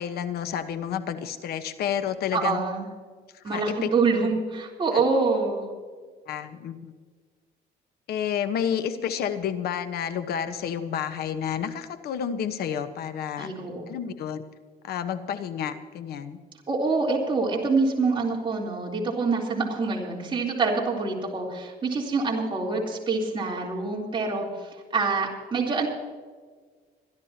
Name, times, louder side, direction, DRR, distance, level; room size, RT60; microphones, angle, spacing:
voice 1, 0.0-2.6 3.5-3.9 6.3-6.9 8.1-13.5 13.9-14.4 14.8-16.4, left 8 dB, 70° left, 10 dB, 1.3 m, -30 dB
voice 2, 2.3-2.9 3.4-5.7 13.4-13.9 16.7-25.9, right 4 dB, 30° right, -2 dB, 3.7 m, -26 dB
25.0 x 12.0 x 2.9 m, 1.5 s
cardioid pair, 110°, 17 cm